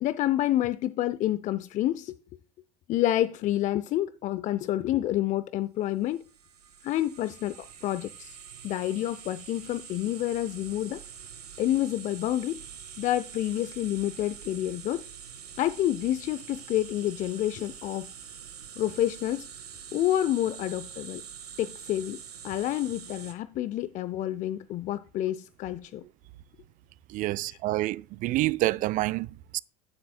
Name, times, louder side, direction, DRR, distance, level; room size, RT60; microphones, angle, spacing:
voice 1, 0.0-2.2 2.9-6.2 6.8-8.4 8.6-11.0 11.6-12.6 13.0-15.0 15.6-18.1 18.8-19.5 19.9-21.2 21.6-26.0, left 13 dB, 40° left, 0.5 m, -28 dB
sound 1, 6.1-23.3, right 8 dB, 85° right, 1.5 m, -45 dB
voice 2, 27.1-29.6, right 17 dB, 45° right, 0.5 m, -28 dB
14.5 x 7.5 x 2.2 m
hypercardioid pair, 80°, 19 cm